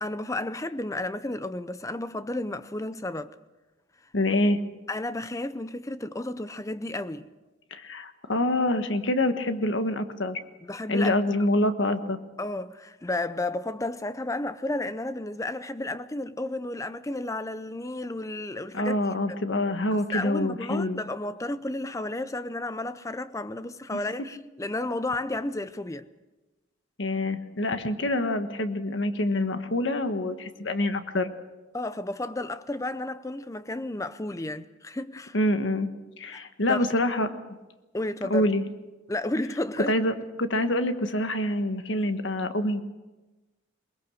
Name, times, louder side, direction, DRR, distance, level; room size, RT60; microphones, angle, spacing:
voice 1, 0.0-3.3 4.9-7.3 10.6-11.1 12.4-19.0 19.9-26.1 31.7-35.4 36.3-36.9 37.9-38.4 39.1-39.9, left 2 dB, 15° left, 0.6 m, -32 dB
voice 2, 4.1-4.6 7.7-10.4 10.9-12.2 18.7-21.0 23.9-24.0 27.0-31.3 35.3-35.9 36.2-37.4 38.3-38.6 39.9-42.8, left 1 dB, 75° left, 1.4 m, -26 dB
22.0 x 20.5 x 6.4 m
head